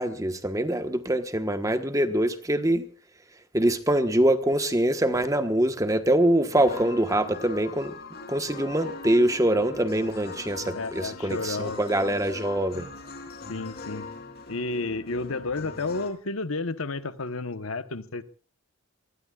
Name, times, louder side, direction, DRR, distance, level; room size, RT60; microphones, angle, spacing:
voice 1, 0.0-2.9 3.5-7.9 8.3-12.9, right 1 dB, 15° right, 1.2 m, -24 dB
sound 1, 6.5-16.1, left 3 dB, 45° left, 3.4 m, -41 dB
voice 2, 10.7-11.8 13.5-14.1 14.5-18.2, left 3 dB, 70° left, 1.1 m, -31 dB
25.0 x 19.5 x 2.4 m
head